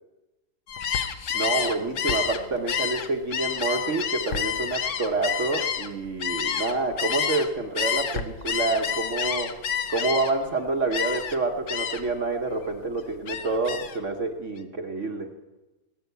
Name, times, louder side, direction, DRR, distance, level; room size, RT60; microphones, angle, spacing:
Gull seagull, 0.7-7.5 7.7-10.5 10.9-11.4 11.7-12.1 12.5-14.0, left 8 dB, 55° left, 0.9 m, -29 dB
voice 1, 1.3-9.6 9.9-15.3, right 3 dB, 45° right, 4 dB, 1.2 m, -28 dB
19.0 x 9.0 x 8.0 m, 1.1 s
omnidirectional pair, 2.1 m